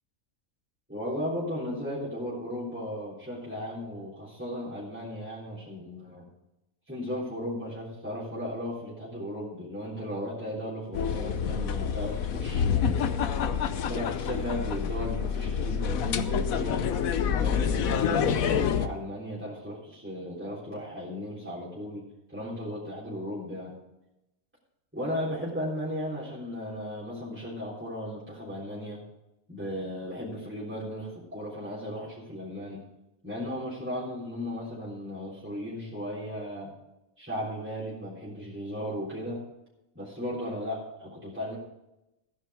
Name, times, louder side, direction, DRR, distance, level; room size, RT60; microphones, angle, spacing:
voice 1, 0.9-6.3 6.9-13.2 13.9-16.9 17.3-23.8 24.9-29.0 29.5-32.8 33.2-36.7 37.2-39.4 40.0-41.6, equal, 10° right, -8 dB, 3.5 m, -36 dB
sound 1, 10.9-18.9, left 7 dB, 75° left, 1.2 m, -27 dB
14.0 x 10.0 x 4.8 m, 0.93 s
omnidirectional pair, 1.5 m